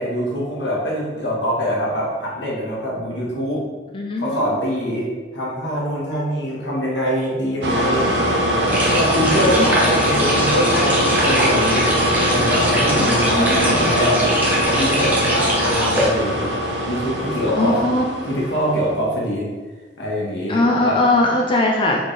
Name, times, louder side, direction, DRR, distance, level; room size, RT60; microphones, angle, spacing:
voice 1, 0.0-3.6 4.2-8.1 8.9-11.9 12.2-14.2 14.6-16.4 16.8-17.8 18.2-19.5 20.0-21.0, equal, 90° left, -4 dB, 1.3 m, -24 dB
voice 2, 3.9-4.4 9.6-10.3 13.0-13.9 17.6-18.0 20.5-22.0, left 2 dB, 30° left, 0 dB, 0.4 m, -20 dB
sound 1, 7.6-18.8, equal, 80° right, 0.7 m, -21 dB
sound 2, 8.7-16.1, right 1 dB, 10° right, 0.8 m, -23 dB
4.1 x 3.5 x 3.2 m, 1.3 s
head